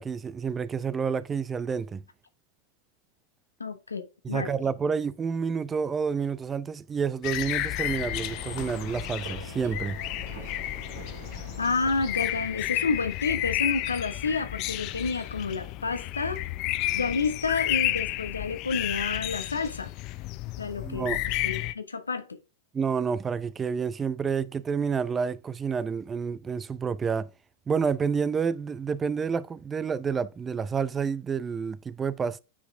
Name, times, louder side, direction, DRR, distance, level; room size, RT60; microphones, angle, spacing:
voice 1, 0.0-2.0 4.2-10.0 20.8-21.2 22.7-27.3 27.7-32.4, right 6 dB, 20° right, 0.6 m, -29 dB
voice 2, 3.6-4.5 11.6-16.4 16.9-19.9 20.6-21.1 21.4-22.4, left 4 dB, 85° left, 1.2 m, -30 dB
sound 1, 7.2-21.7, left 16 dB, 45° left, 0.6 m, -32 dB
Ocean, 8.1-13.1, right 7 dB, 65° right, 2.3 m, -46 dB
9.7 x 4.7 x 3.6 m
figure-of-eight pair, 95°, 0 cm